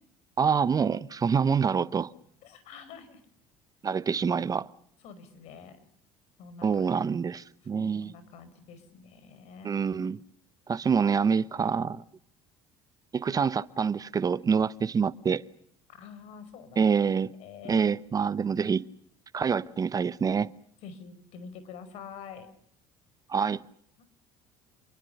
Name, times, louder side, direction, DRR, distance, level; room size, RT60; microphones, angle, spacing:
voice 1, 0.4-2.1 3.8-4.7 6.6-8.1 9.6-10.2 10.7-12.0 13.1-15.4 16.8-17.3 17.6-18.8 19.3-20.5 23.3-23.6, right 6 dB, 30° right, 16 dB, 1.0 m, -26 dB
voice 2, 2.4-3.2 5.0-5.8 6.4-6.9 7.8-9.7 15.9-16.9 17.4-17.8 20.8-22.5 24.0-24.1, left 6 dB, 65° left, 13 dB, 5.0 m, -46 dB
29.0 x 22.5 x 6.8 m, 0.68 s
supercardioid pair, 85°, 12 cm